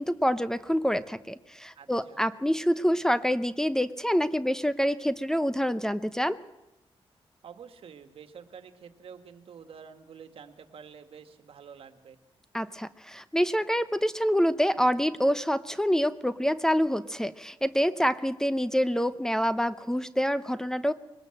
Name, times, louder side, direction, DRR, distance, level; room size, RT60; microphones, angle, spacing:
voice 1, 0.0-6.4 12.5-20.9, equal, 5° left, 13 dB, 0.7 m, -26 dB
voice 2, 1.8-2.3 7.4-12.2, right 7 dB, 70° right, 8 dB, 1.8 m, -48 dB
21.5 x 19.0 x 7.8 m, 0.93 s
cardioid pair, 100°, 10 cm